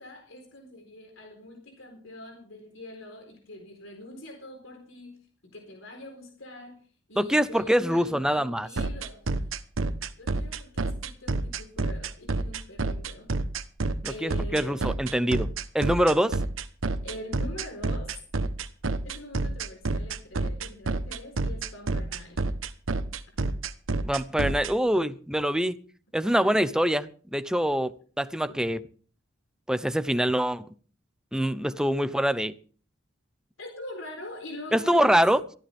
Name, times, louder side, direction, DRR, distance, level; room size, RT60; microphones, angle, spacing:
voice 1, 0.0-6.8 7.1-9.2 9.5-9.6 10.2-13.3 14.1-14.9 17.0-18.2 19.0-22.4 33.6-35.2, left 1 dB, 75° left, 4.1 m, -43 dB
voice 2, 7.2-8.7 14.0-15.5 15.7-16.4 24.0-25.8 26.1-28.8 29.7-30.7 31.3-32.5 34.7-35.4, equal, 5° right, 0.8 m, -24 dB
sound 1, 8.8-24.7, right 3 dB, 85° right, 1.2 m, -28 dB
23.0 x 14.5 x 3.5 m
head